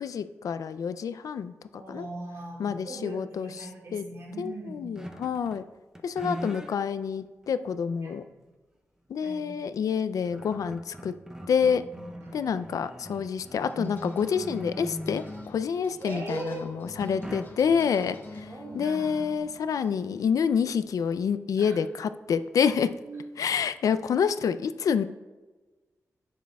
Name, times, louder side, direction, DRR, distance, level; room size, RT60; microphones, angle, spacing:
voice 1, 0.0-1.5 1.9-2.1 2.6-3.7 3.9-4.0 4.4-5.6 6.0-8.2 9.1-11.1 11.5-11.8 12.3-18.5 18.7-22.9 23.4-25.0, left 7 dB, 85° left, 12 dB, 0.4 m, -28 dB
voice 2, 1.7-4.9 8.0-8.2 9.2-9.5 11.6-12.6 16.0-16.7 18.5-19.4 21.6-21.8 23.0-23.3, right 2 dB, 55° right, -1 dB, 1.8 m, -40 dB
sound 1, 4.9-5.7 5.9-6.7 7.4-7.5 9.6-9.7 10.0-15.7 17.0-17.8, right 1 dB, 10° right, 0.6 m, -40 dB
sound 2, 13.7-21.3, left 2 dB, 40° left, 1.1 m, -46 dB
10.0 x 7.4 x 2.3 m, 1.2 s
wide cardioid pair, 135°, 6 cm